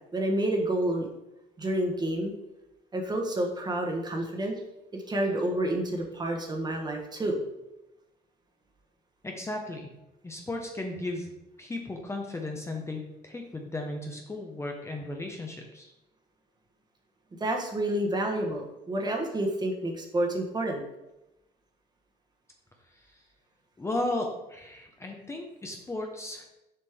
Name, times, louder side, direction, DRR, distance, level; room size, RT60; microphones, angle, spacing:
voice 1, 0.1-1.1 1.6-2.3 2.9-4.5 5.1-7.4 17.4-20.8, right 1 dB, 25° right, 1 dB, 1.3 m, -29 dB
voice 2, 9.2-9.9 10.2-11.3 11.6-15.9 23.1-23.2 23.8-26.5, left 2 dB, 15° left, 1 dB, 0.8 m, -35 dB
6.9 x 5.1 x 3.6 m, 0.94 s
cardioid pair, 110°, 17 cm